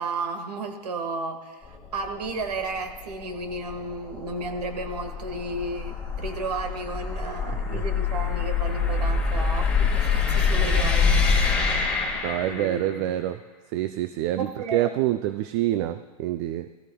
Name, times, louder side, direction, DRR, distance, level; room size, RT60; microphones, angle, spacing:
voice 1, 0.0-12.2 12.5-13.1 14.4-14.9, right 3 dB, 90° right, 6 dB, 1.6 m, -33 dB
sound 1, 1.6-13.0, left 5 dB, 5° left, 2.9 m, -26 dB
voice 2, 12.2-13.4 13.7-16.7, right 13 dB, 45° right, 10 dB, 0.4 m, -26 dB
15.0 x 14.5 x 2.3 m, 1.2 s
hypercardioid pair, 125°, 20 cm